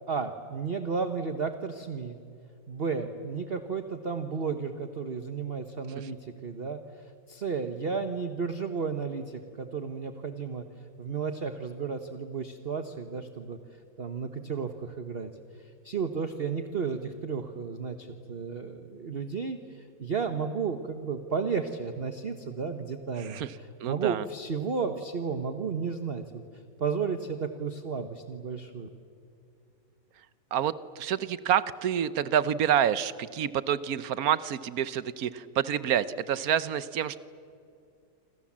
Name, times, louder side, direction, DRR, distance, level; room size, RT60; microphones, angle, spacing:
voice 1, 0.1-2.2 2.7-10.6 11.0-13.6 14.0-28.9, right 5 dB, 35° right, 8 dB, 1.2 m, -33 dB
voice 2, 23.2-23.5 23.8-24.2 30.5-37.2, right 9 dB, 60° right, 16 dB, 1.1 m, -28 dB
27.5 x 27.0 x 7.4 m, 2.4 s
omnidirectional pair, 2.1 m